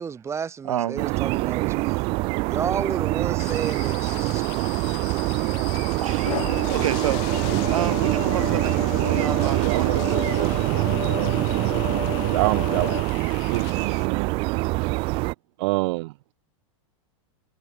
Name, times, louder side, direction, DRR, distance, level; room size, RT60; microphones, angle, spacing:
voice 1, 0.0-2.1 2.4-4.4, right 6 dB, 15° right, 3.6 m, -32 dB
voice 2, 0.6-1.1 6.0-6.4 6.7-10.0, right 11 dB, 90° right, 1.5 m, -30 dB
sound 1, 1.0-15.3, right 25 dB, 35° right, 0.4 m, -24 dB
sound 2, 3.4-14.1, left 27 dB, 50° left, 3.0 m, -41 dB
sound 3, 4.7-13.0, left 12 dB, 85° left, 6.9 m, -34 dB
voice 3, 9.4-13.0 13.5-14.7 15.6-16.3, right 23 dB, 55° right, 1.0 m, -29 dB
supercardioid pair, 145°, 17 cm